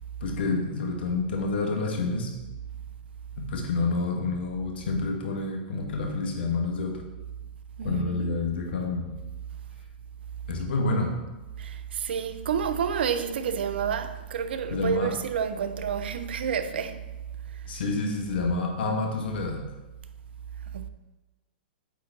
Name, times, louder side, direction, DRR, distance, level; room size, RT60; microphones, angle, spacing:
voice 1, 0.2-2.3 3.4-7.0 7.8-9.1 10.5-11.2 14.7-15.1 17.7-19.6, left 3 dB, 70° left, 1.5 m, -28 dB
voice 2, 7.8-8.1 11.6-17.0 20.7-20.9, right 7 dB, 75° right, 0.6 m, -29 dB
8.2 x 3.9 x 4.0 m
hypercardioid pair, 125°, 6 cm